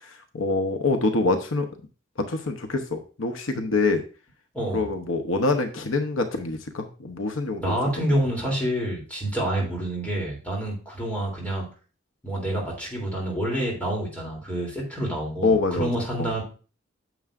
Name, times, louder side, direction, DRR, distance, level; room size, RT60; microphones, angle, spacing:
voice 1, 0.3-1.7 2.3-4.0 4.7-8.2 15.4-15.9 16.2-16.3, left 3 dB, 75° left, 6 dB, 0.9 m, -25 dB
voice 2, 4.5-4.9 7.6-11.7 12.2-16.4, right 1 dB, 5° left, -3 dB, 3.0 m, -28 dB
9.2 x 6.9 x 2.5 m, 0.36 s
head